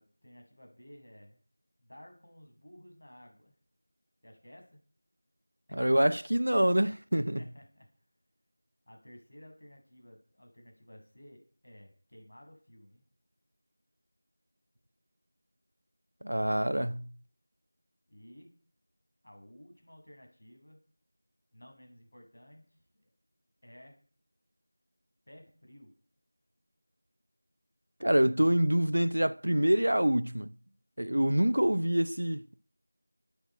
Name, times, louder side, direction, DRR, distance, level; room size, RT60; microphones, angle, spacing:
voice 1, 0.0-1.4 1.8-3.5 4.2-4.8 5.7-5.8 6.8-6.9 7.4-7.9 8.9-13.0 18.1-18.5 19.2-20.8 21.5-23.1 23.6-24.0 25.3-25.9, equal, 65° left, 7.5 m, -54 dB
voice 2, 5.7-7.4 16.2-17.1 28.0-30.5 31.0-32.6, right 1 dB, 90° right, 0.7 m, -26 dB
9.7 x 9.3 x 9.2 m
figure-of-eight pair, 175°, 0 cm